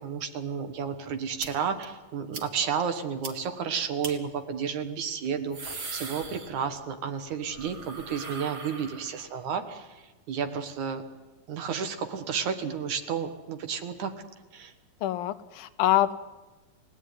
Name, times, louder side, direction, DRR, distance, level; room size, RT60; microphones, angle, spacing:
voice 1, 0.0-11.0 11.5-14.1 14.5-14.7, right 7 dB, 60° right, 8 dB, 2.6 m, -32 dB
sound 1, 1.4-1.5 1.8-1.9 2.3-2.5 2.8-2.9 3.2-3.3 4.0-4.1 5.2-6.9 7.2-9.4, right 3 dB, 35° right, 2.1 m, -40 dB
voice 2, 15.0-16.1, left 14 dB, 80° left, 12 dB, 2.7 m, -25 dB
30.0 x 17.5 x 9.6 m, 1.2 s
omnidirectional pair, 4.2 m